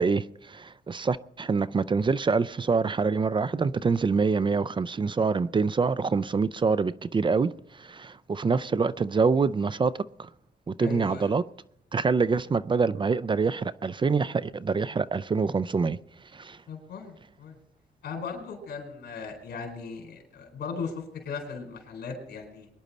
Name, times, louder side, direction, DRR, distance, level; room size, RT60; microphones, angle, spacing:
voice 1, 0.0-9.9 10.2-10.3 10.7-11.4 11.9-16.0 16.3-16.6, right 4 dB, 30° right, 0.4 m, -25 dB
voice 2, 10.8-11.3 16.7-17.6 18.0-22.7, left 5 dB, 80° left, 4.3 m, -37 dB
23.0 x 10.5 x 4.2 m
cardioid pair, 105°, 17 cm